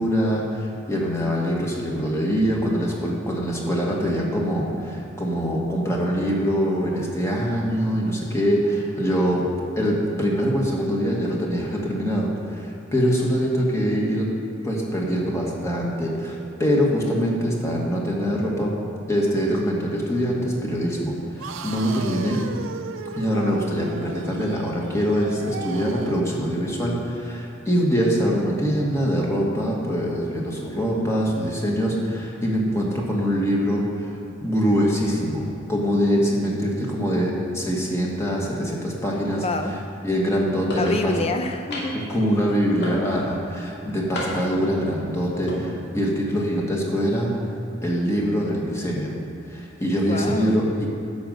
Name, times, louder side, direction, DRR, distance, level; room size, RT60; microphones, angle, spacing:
voice 1, 0.0-9.5 9.8-14.3 14.6-18.7 19.1-22.4 23.1-34.2 34.4-39.4 40.0-41.2 41.9-47.3 47.8-49.2 49.5-50.9, equal, 15° left, -3 dB, 1.6 m, -24 dB
sound 1, 21.4-26.3, right 4 dB, 75° right, 0.6 m, -35 dB
voice 2, 39.4-39.7 40.8-42.0 50.1-50.6, left 2 dB, 30° left, 6 dB, 0.7 m, -27 dB
sound 2, 40.7-41.0 41.7-42.1 42.8-43.3 44.1-44.6 45.3-45.6, equal, 55° left, 2.2 m, -31 dB
11.5 x 5.3 x 7.7 m, 2.7 s
head